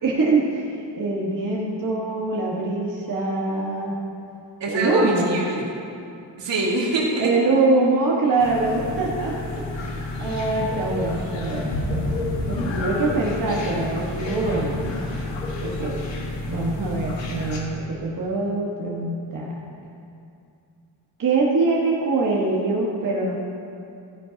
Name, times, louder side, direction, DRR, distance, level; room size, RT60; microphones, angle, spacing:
voice 1, 0.0-4.0 4.7-5.3 7.2-9.9 10.2-11.8 12.5-14.8 15.6-16.0 16.5-19.8 21.2-23.4, right 3 dB, 45° right, -4 dB, 1.5 m, -24 dB
voice 2, 4.6-5.7 6.4-7.3, right 2 dB, 70° right, -3 dB, 2.3 m, -25 dB
sound 1, 8.4-17.6, left 2 dB, 80° left, 1.9 m, -29 dB
15.0 x 10.0 x 2.9 m, 2.6 s
cardioid pair, 95°, 44 cm